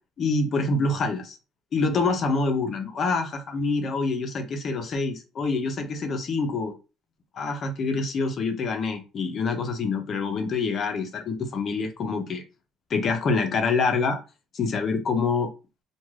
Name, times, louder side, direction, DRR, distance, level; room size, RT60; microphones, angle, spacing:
voice 1, 0.2-1.4 1.7-6.7 7.4-12.4 12.9-14.2 14.5-15.5, left 4 dB, 35° left, 6 dB, 0.5 m, -26 dB
2.3 x 2.2 x 3.1 m, 0.31 s
cardioid pair, 170°, 0 cm